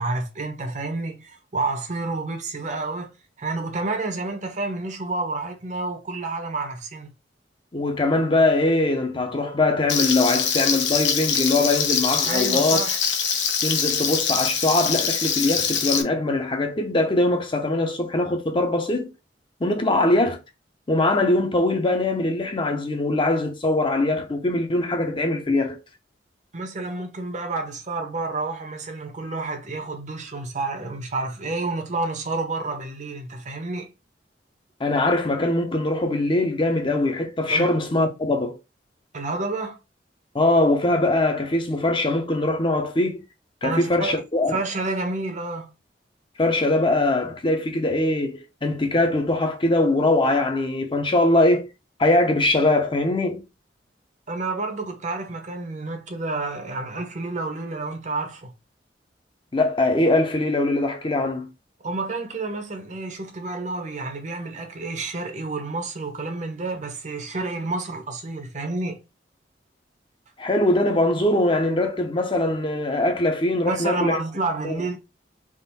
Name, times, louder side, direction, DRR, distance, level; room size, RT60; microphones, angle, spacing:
voice 1, 0.0-7.1 12.3-13.0 26.5-33.9 37.5-37.7 39.1-39.8 43.6-44.2 44.5-45.7 54.3-58.5 61.8-69.0 73.7-75.0, right 3 dB, 45° right, 0.8 m, -29 dB
voice 2, 7.7-12.8 13.6-19.1 19.6-20.4 20.9-25.8 34.8-38.6 40.3-43.2 43.6-44.6 46.4-51.7 52.0-53.4 59.5-61.5 70.4-74.2 74.6-74.8, left 2 dB, 30° left, 0.6 m, -22 dB
Frying (food), 9.9-16.0, left 7 dB, 80° left, 0.7 m, -24 dB
3.6 x 2.5 x 4.1 m
head